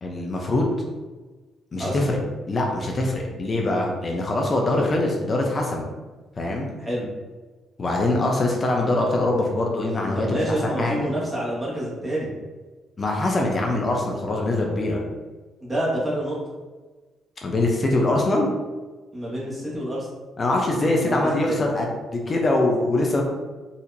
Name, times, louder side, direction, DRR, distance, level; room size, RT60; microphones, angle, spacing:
voice 1, 0.0-0.7 1.7-2.2 2.5-5.9 6.4-6.7 7.8-11.1 13.0-15.0 17.4-18.5 20.4-23.2, left 2 dB, 35° left, 0 dB, 0.6 m, -23 dB
voice 2, 1.7-2.2 4.6-4.8 6.8-7.1 10.1-12.3 15.6-16.4 19.1-20.1 20.9-21.6, right 1 dB, 15° right, -5 dB, 1.4 m, -28 dB
4.2 x 2.8 x 2.6 m, 1.3 s
cardioid pair, 90°, 0 cm